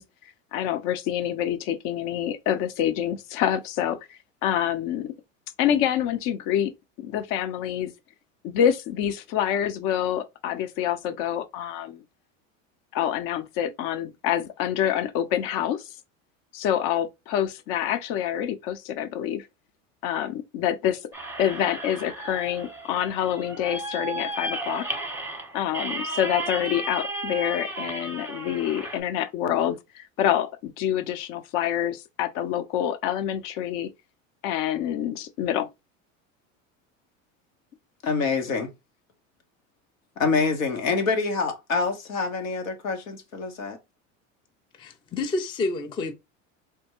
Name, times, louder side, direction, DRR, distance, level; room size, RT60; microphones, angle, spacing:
voice 1, 0.0-5.1 5.6-6.7 7.0-7.9 8.4-12.0 12.9-15.9 16.5-19.5 20.0-21.0 21.4-24.9 25.5-33.9 34.4-35.7, left 10 dB, 55° left, 0.6 m, -27 dB
sound 1, 21.1-29.0, right 2 dB, 5° right, 0.8 m, -34 dB
voice 2, 38.0-38.7 40.2-43.8, left 4 dB, 90° left, 0.9 m, -26 dB
voice 3, 44.8-46.1, left 3 dB, 15° left, 0.3 m, -29 dB
3.4 x 2.2 x 2.9 m
hypercardioid pair, 90°, 40 cm